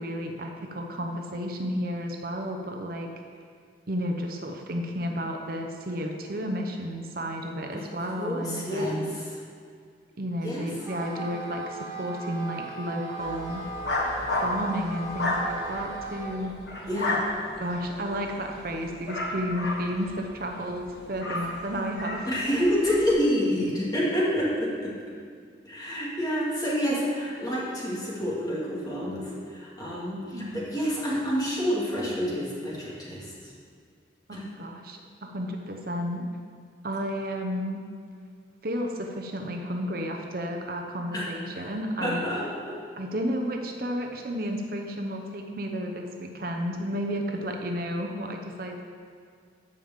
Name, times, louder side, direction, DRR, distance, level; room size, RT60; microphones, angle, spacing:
voice 1, 0.0-3.1 3.9-9.1 10.2-13.6 14.4-16.6 16.8-17.0 17.6-22.3 30.2-30.6 34.3-36.2 36.8-37.8 38.6-42.3 43.0-48.8, equal, 50° right, 3 dB, 0.8 m, -32 dB
voice 2, 7.7-9.4 10.4-10.6 16.9-17.2 22.3-24.9 25.6-33.3 34.3-34.4 41.1-41.7 42.0-42.8, equal, 20° left, -6 dB, 2.2 m, -28 dB
Wind instrument woodwind instrument, 10.8-16.4, right 2 dB, 15° right, 1.3 m, -38 dB
sound 1, 13.2-23.1, left 2 dB, 60° left, 1.5 m, -33 dB
11.0 x 5.2 x 7.3 m, 2.1 s
head